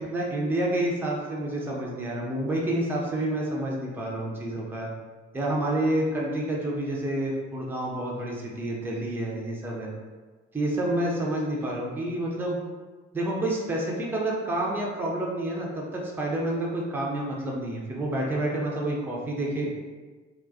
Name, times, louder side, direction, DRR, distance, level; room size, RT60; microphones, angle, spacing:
voice 1, 0.1-4.9 5.3-9.9 10.5-12.6 13.1-19.7, right 1 dB, 5° right, -3 dB, 0.4 m, -29 dB
2.2 x 2.2 x 2.5 m, 1.3 s
figure-of-eight pair, 45°, 35 cm